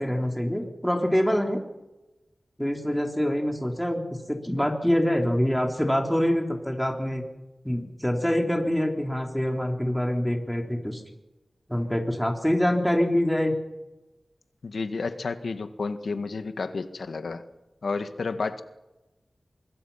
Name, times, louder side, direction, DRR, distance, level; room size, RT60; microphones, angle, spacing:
voice 1, 0.0-1.6 2.6-4.0 4.3-7.2 7.6-11.0 11.7-13.5, equal, 5° left, 3 dB, 3.8 m, -25 dB
voice 2, 14.6-17.4 17.8-18.6, left 4 dB, 90° left, 9 dB, 1.7 m, -31 dB
25.0 x 22.0 x 5.8 m, 1.0 s
wide cardioid pair, 65°, 0 cm